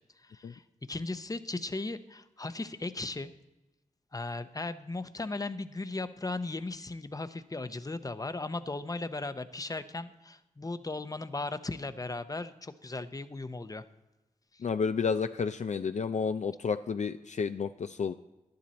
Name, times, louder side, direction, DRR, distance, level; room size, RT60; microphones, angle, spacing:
voice 1, 0.2-3.3 4.1-13.8 14.5-14.6, left 2 dB, 25° left, 11 dB, 0.7 m, -37 dB
voice 2, 14.6-18.1, left 5 dB, 55° left, 9 dB, 0.4 m, -31 dB
11.5 x 10.5 x 4.2 m, 1.0 s
cardioid pair, 50°, 14 cm